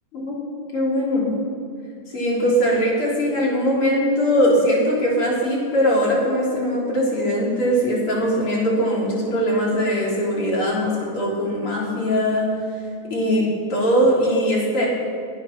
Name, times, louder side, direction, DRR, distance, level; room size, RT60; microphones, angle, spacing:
voice 1, 0.7-1.4 2.1-12.5 13.1-14.9, equal, 35° left, -4 dB, 4.2 m, -21 dB
22.5 x 9.0 x 6.1 m, 2.3 s
omnidirectional pair, 4.4 m